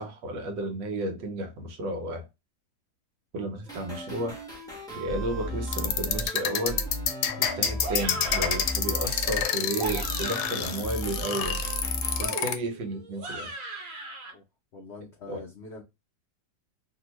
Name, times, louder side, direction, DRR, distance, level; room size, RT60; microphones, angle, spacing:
voice 1, 0.0-2.3 3.3-4.4 4.9-6.8 7.4-11.6 12.2-13.8 15.3-15.4, right 1 dB, 90° right, 1.5 m, -33 dB
sound 1, 3.7-12.3, right 1 dB, 5° left, 0.5 m, -35 dB
sound 2, 5.7-12.5, left 8 dB, 70° left, 1.1 m, -28 dB
sound 3, 7.8-8.6 9.6-10.8 12.2-14.3, right 2 dB, 55° right, 1.1 m, -38 dB
voice 2, 14.7-15.8, left 3 dB, 90° left, 0.5 m, -44 dB
3.0 x 2.7 x 2.9 m
omnidirectional pair, 2.0 m